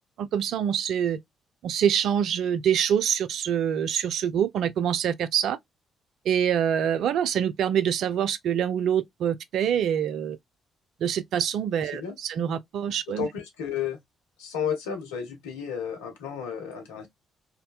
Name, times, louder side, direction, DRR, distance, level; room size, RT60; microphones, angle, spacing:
voice 1, 0.2-1.2 1.6-5.6 6.3-10.4 11.0-13.3, right 9 dB, 60° right, 0.3 m, -25 dB
voice 2, 11.8-12.2 13.2-14.0 14.4-17.1, left 7 dB, 75° left, 0.6 m, -32 dB
2.7 x 2.2 x 2.2 m
figure-of-eight pair, 40°, 0 cm